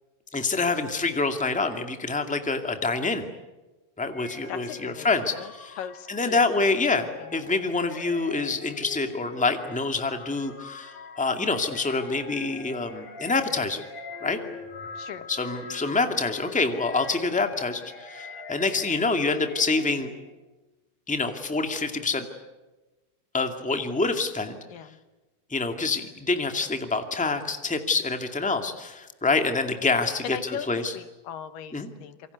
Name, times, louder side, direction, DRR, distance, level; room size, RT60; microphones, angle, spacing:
voice 1, 0.3-3.2 4.0-5.8 6.1-13.8 14.2-14.4 15.3-20.1 21.1-22.2 23.3-24.6 25.5-30.9 31.7-31.9, left 3 dB, 5° left, 6 dB, 1.4 m, -26 dB
sound 1, 4.1-20.3, left 4 dB, 55° left, 4.1 m, -43 dB
voice 2, 4.5-5.5 5.8-6.6 15.0-15.3 24.7-25.0 30.2-32.3, left 9 dB, 80° left, 11 dB, 3.0 m, -39 dB
27.5 x 24.0 x 8.2 m, 1.1 s
omnidirectional pair, 3.9 m